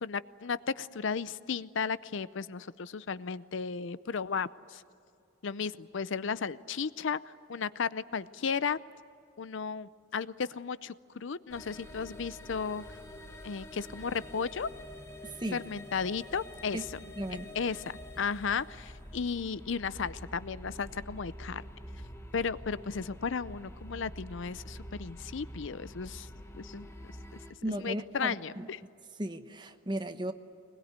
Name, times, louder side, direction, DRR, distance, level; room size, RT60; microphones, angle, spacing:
voice 1, 0.0-4.8 5.4-8.8 9.4-12.8 13.4-14.7 15.5-17.0 17.5-17.8 18.2-21.6 22.3-26.3 26.5-26.9 27.8-28.8, left 5 dB, 65° left, 0.5 m, -34 dB
sound 1, 11.5-27.5, equal, 15° left, 1.7 m, -47 dB
voice 2, 15.2-15.6 16.7-16.8 17.2-17.5 27.6-28.7 29.2-30.3, right 1 dB, 20° right, 1.1 m, -35 dB
22.5 x 21.0 x 9.6 m
head